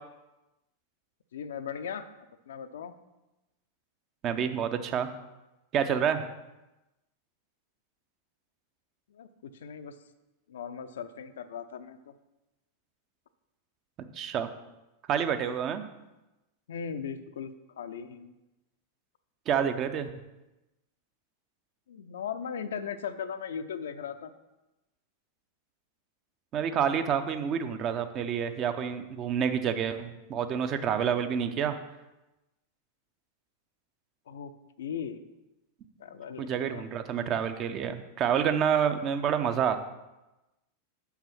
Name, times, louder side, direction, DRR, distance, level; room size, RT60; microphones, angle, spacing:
voice 1, 1.3-2.1 2.5-2.9 9.1-9.9 10.5-12.1 16.7-18.3 21.9-24.3 34.3-34.5 34.8-35.2 36.0-36.8, left 7 dB, 60° left, 10 dB, 0.5 m, -38 dB
voice 2, 4.2-5.1 5.7-6.2 14.1-14.5 15.1-15.8 19.5-20.1 26.5-31.8 36.4-39.8, right 8 dB, 35° right, 9 dB, 0.7 m, -28 dB
6.9 x 5.8 x 5.8 m, 1.0 s
figure-of-eight pair, 90°, 0 cm